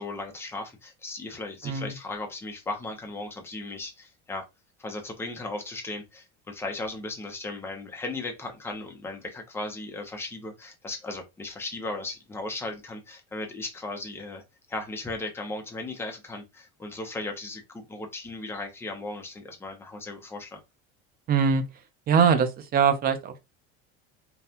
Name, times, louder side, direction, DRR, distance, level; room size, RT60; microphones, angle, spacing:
voice 1, 0.0-4.5 4.8-14.4 14.7-20.6, left 2 dB, 10° left, 0.7 m, -36 dB
voice 2, 21.3-21.6 22.1-23.4, right 6 dB, 30° right, 0.6 m, -22 dB
5.4 x 2.3 x 2.8 m
cardioid pair, 160°, 31 cm